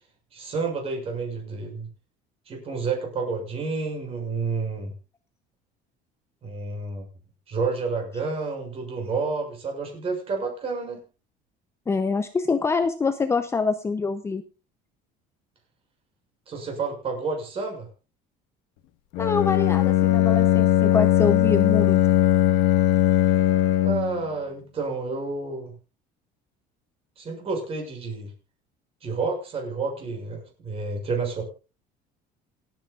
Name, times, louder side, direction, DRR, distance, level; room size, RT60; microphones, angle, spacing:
voice 1, 0.3-1.9 2.5-4.9 6.4-7.0 7.5-11.0 16.5-17.9 23.8-25.7 27.2-28.3 29.0-31.4, right 4 dB, 35° right, 3 dB, 6.6 m, -30 dB
voice 2, 11.9-14.4 19.2-22.0, left 4 dB, 15° left, 9 dB, 0.7 m, -25 dB
Bowed string instrument, 19.1-24.2, left 13 dB, 90° left, 1.4 m, -19 dB
28.0 x 9.4 x 2.5 m, 0.32 s
cardioid pair, 160°, 18 cm